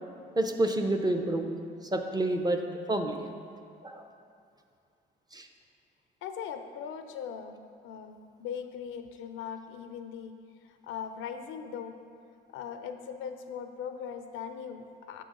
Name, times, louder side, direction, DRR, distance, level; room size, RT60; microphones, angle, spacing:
voice 1, 0.4-1.6 1.9-2.6 2.9-3.2 3.8-4.0 5.3-5.5, right 1 dB, 20° right, 4 dB, 0.5 m, -28 dB
voice 2, 6.2-7.6 7.8-10.3 10.6-12.0 12.5-15.2, left 7 dB, 85° left, 7 dB, 0.5 m, -40 dB
7.2 x 3.8 x 5.2 m, 2.5 s
cardioid pair, 90°, 20 cm